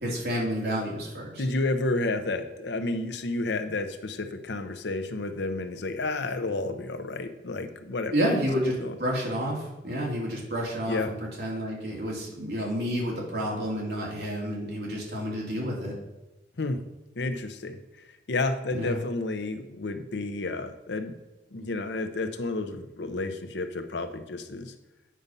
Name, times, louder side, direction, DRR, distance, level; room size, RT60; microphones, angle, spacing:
voice 1, 0.0-1.4 8.1-11.0 11.4-16.0 18.7-19.0, equal, 65° right, -3 dB, 2.4 m, -30 dB
voice 2, 1.4-8.4 8.8-9.0 10.9-11.1 16.6-16.8 17.2-17.8 18.3-21.1 21.5-24.7, left 2 dB, 80° left, 8 dB, 0.8 m, -31 dB
8.6 x 5.4 x 5.4 m, 1.0 s
head